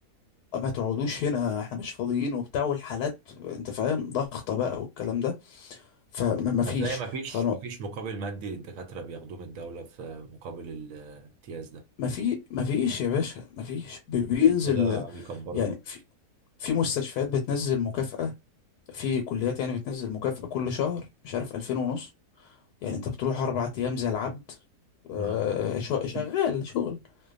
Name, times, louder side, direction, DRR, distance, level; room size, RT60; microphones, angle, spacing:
voice 1, 0.5-5.9 6.1-7.0 7.3-7.5 12.0-15.0 15.5-16.0 16.6-18.3 18.9-22.1 22.4-22.6 22.8-24.4 25.1-27.0, left 7 dB, 85° left, 1.2 m, -28 dB
voice 2, 6.6-11.8 14.7-15.8 25.2-25.4 26.1-26.3, right 4 dB, 70° right, 0.9 m, -37 dB
2.7 x 2.2 x 2.3 m
omnidirectional pair, 1.7 m